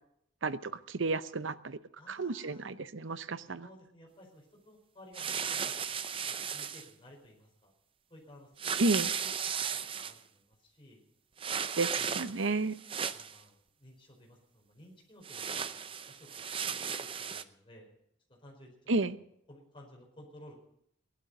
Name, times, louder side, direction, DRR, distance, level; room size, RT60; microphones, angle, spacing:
voice 1, 0.4-1.8 2.1-3.7 8.8-9.1 11.8-12.8 18.9-19.2, right 3 dB, 75° right, 14 dB, 0.7 m, -32 dB
voice 2, 2.0-2.6 3.6-7.7 8.1-9.3 9.7-11.0 12.0-12.5 13.1-16.5 16.7-17.9 18.3-18.9 19.5-20.5, left 1 dB, 25° left, 0 dB, 4.5 m, -56 dB
sound 1, 5.1-6.9 8.6-10.2 11.4-12.5 12.8-13.4 15.2-17.4, right 7 dB, 25° right, 0.6 m, -35 dB
16.0 x 11.5 x 6.6 m, 0.73 s
head